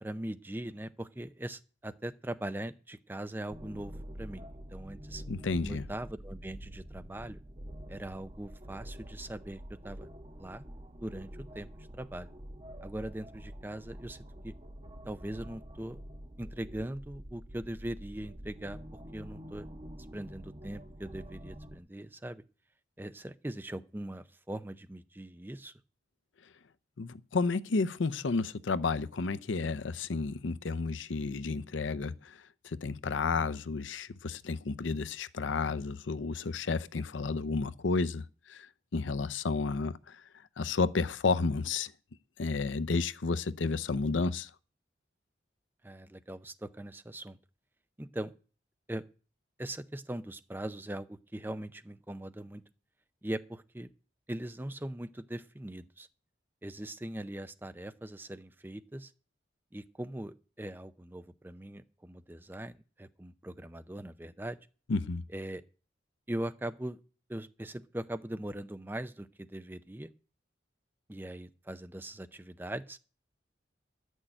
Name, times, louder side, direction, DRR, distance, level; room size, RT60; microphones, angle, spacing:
voice 1, 0.0-4.4 4.7-5.2 5.6-7.4 7.9-10.1 10.4-10.6 11.0-12.3 12.8-14.5 15.1-16.0 16.4-19.7 20.1-22.4 23.0-25.7 45.8-47.4 48.0-48.3 48.9-49.0 49.6-52.6 53.2-53.9 54.3-56.1 56.6-59.1 59.7-64.6 65.3-65.6 66.3-67.0 67.3-70.1 71.1-73.0, right 1 dB, 10° right, 0.5 m, -41 dB
sound 1, 3.5-21.8, equal, 30° right, 1.0 m, -47 dB
voice 2, 5.3-5.8 27.0-32.4 32.6-38.7 38.9-40.2 40.6-41.9 42.4-44.5 64.9-65.2, left 4 dB, 90° left, 0.6 m, -31 dB
11.0 x 6.4 x 8.9 m
head